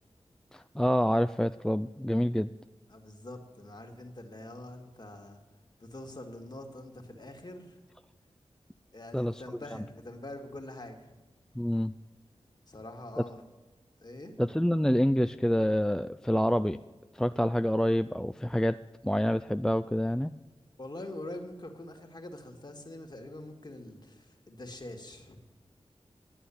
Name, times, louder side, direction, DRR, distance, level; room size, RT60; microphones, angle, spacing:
voice 1, 0.5-2.5 9.1-9.4 11.6-11.9 14.4-16.8 17.2-18.8 19.0-20.3, equal, 5° left, 11 dB, 0.3 m, -27 dB
voice 2, 2.9-5.4 5.8-7.8 8.9-11.1 12.7-13.5 14.0-14.3 20.8-25.4, left 1 dB, 40° left, 3 dB, 2.0 m, -44 dB
11.5 x 9.1 x 8.6 m, 1.2 s
wide cardioid pair, 65°, 11 cm